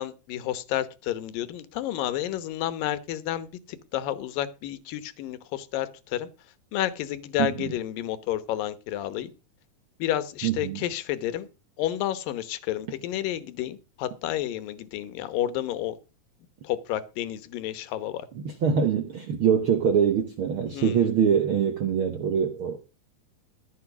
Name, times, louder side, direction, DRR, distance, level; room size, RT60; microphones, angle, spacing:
voice 1, 0.0-6.3 6.7-9.3 10.0-11.5 11.8-16.0 16.6-18.3 20.7-21.1, left 12 dB, 75° left, 2.7 m, -30 dB
voice 2, 7.4-7.7 10.4-10.8 18.3-22.8, right 7 dB, 85° right, 1.1 m, -24 dB
14.5 x 6.0 x 6.1 m
omnidirectional pair, 4.2 m